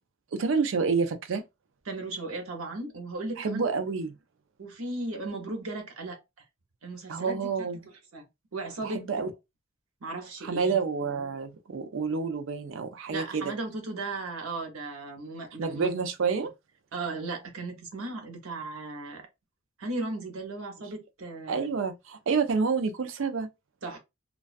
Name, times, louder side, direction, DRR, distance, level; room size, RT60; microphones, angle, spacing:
voice 1, 0.3-1.4 3.4-4.1 7.1-7.9 8.8-9.3 10.4-13.5 15.6-16.5 21.5-23.5, right 5 dB, 65° right, 0.4 m, -28 dB
voice 2, 1.9-3.6 4.6-6.2 6.8-7.5 8.1-8.2 8.5-9.1 10.0-10.8 13.1-15.9 16.3-16.4 16.9-19.3 19.8-21.7 23.8-24.0, right 2 dB, 90° right, 0.8 m, -36 dB
2.3 x 2.2 x 2.4 m
head